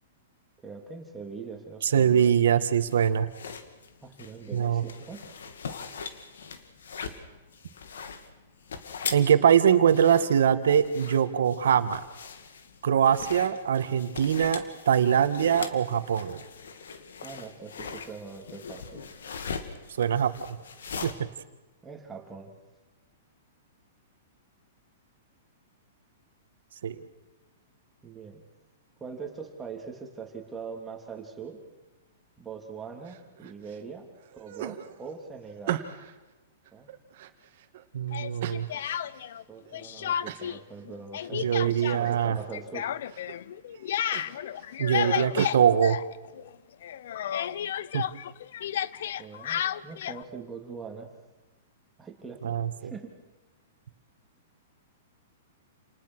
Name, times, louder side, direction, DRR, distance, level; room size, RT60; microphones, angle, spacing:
voice 1, 0.6-2.3 4.0-5.4 17.2-19.0 21.8-22.5 28.0-28.4 29.0-31.6 32.4-34.1 34.3-35.8 36.7-36.9 39.5-42.9 49.2-51.1 52.0-53.1, right 5 dB, 10° right, 2 dB, 3.2 m, -42 dB
voice 2, 1.8-3.3 4.5-4.8 9.1-12.0 12.8-16.4 20.0-20.6 21.0-21.3 26.8-27.0 37.9-38.7 41.3-42.4 44.8-46.0 47.9-48.0 52.4-52.9, right 8 dB, 80° right, 11 dB, 1.8 m, -23 dB
sound 1, 2.8-21.1, left 6 dB, 85° left, 2.4 m, -41 dB
sound 2, 33.0-33.8 34.2-36.2 36.7-37.8 38.4-39.2 39.7-39.8 40.2-40.6 40.9-41.6 41.9-42.5 42.9-43.4 43.7-45.6, right 12 dB, 55° right, 2.1 m, -39 dB
Speech, 38.1-39.4 39.7-40.6 40.8-46.5 46.8-50.2, left 10 dB, 65° left, 0.8 m, -32 dB
29.0 x 20.0 x 6.4 m, 1.1 s
hypercardioid pair, 150°, 0 cm